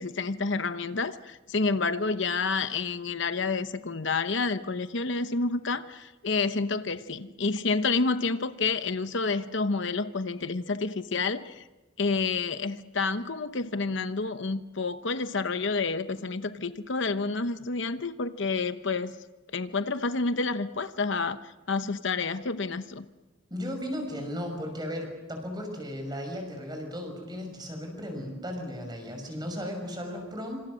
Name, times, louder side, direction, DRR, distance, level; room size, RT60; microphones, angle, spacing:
voice 1, 0.0-11.6 12.0-19.2 19.5-23.0, left 4 dB, 65° left, 10 dB, 0.9 m, -29 dB
voice 2, 23.5-30.6, equal, 20° right, 4 dB, 6.2 m, -35 dB
27.0 x 26.5 x 6.4 m, 1.1 s
head